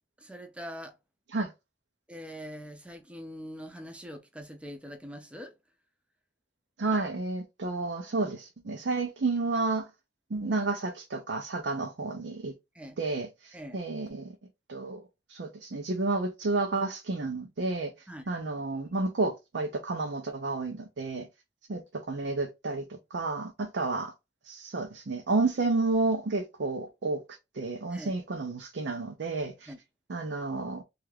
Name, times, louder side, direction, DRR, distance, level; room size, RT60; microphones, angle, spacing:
voice 1, 0.2-1.0 2.1-5.5 12.7-13.0 13.5-14.0 18.1-18.3 27.9-28.2 29.7-29.8, equal, 5° right, 0.5 m, -43 dB
voice 2, 6.8-9.9 10.3-12.5 13.0-14.3 14.7-15.0 15.3-17.9 18.3-21.3 21.7-21.8 22.1-24.1 24.4-27.2 27.5-29.7 30.1-30.8, right 3 dB, 65° right, 0.5 m, -31 dB
3.3 x 2.4 x 3.2 m
head